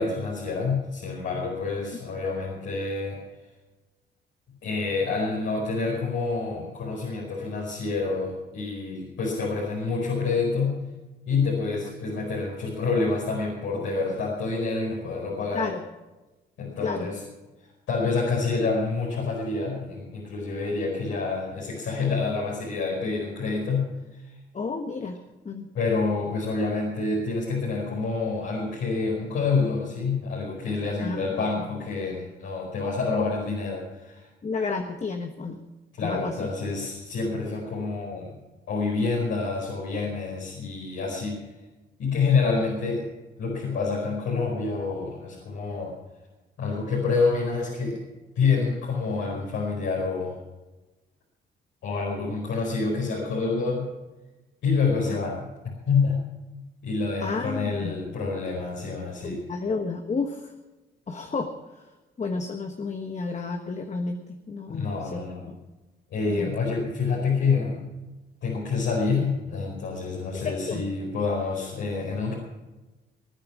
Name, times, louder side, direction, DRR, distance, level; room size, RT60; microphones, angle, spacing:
voice 1, 0.0-3.2 4.6-10.7 11.3-15.6 16.6-17.2 17.9-24.3 25.7-34.3 36.0-38.3 38.7-41.4 42.0-43.0 43.4-45.9 46.6-48.0 48.3-50.4 51.8-53.8 54.6-55.4 55.9-56.2 56.8-59.4 64.7-65.4 66.1-67.8 68.4-72.3, left 4 dB, 75° left, -4 dB, 5.1 m, -27 dB
voice 2, 24.5-25.2 25.4-25.7 31.0-31.2 34.4-35.6 36.0-36.5 55.1-55.2 57.2-57.9 59.2-60.5 61.1-61.8 62.2-65.6 66.3-66.5 70.3-70.8, left 4 dB, 35° left, 5 dB, 1.4 m, -31 dB
20.0 x 9.5 x 6.2 m, 1.1 s
cardioid pair, 90°, 20 cm